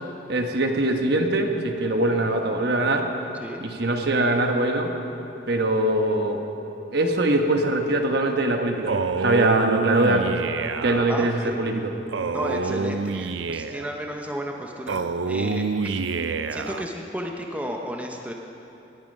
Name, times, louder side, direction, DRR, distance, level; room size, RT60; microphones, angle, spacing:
voice 1, 0.3-3.1 3.6-4.9 5.5-6.4 6.9-10.4 10.8-11.9, right 2 dB, 60° right, 3 dB, 1.3 m, -22 dB
Male speech man speaking, 8.9-11.1 12.1-13.9 14.9-16.9, right 4 dB, 85° right, 0.6 m, -27 dB
voice 2, 11.1-11.6 12.3-16.0 16.5-18.3, equal, 10° right, 1 dB, 0.9 m, -33 dB
19.0 x 12.5 x 5.4 m, 2.9 s
head